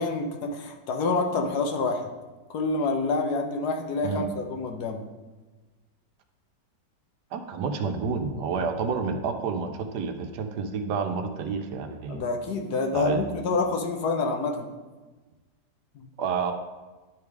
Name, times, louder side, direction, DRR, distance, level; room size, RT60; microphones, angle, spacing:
voice 1, 0.0-2.1 2.5-5.0 12.1-14.7 15.9-16.1, left 3 dB, 65° left, 4 dB, 1.2 m, -27 dB
voice 2, 7.3-12.3 12.9-13.2 16.2-16.5, right 5 dB, 70° right, 6 dB, 1.2 m, -29 dB
10.5 x 3.6 x 4.7 m, 1.2 s
omnidirectional pair, 1.9 m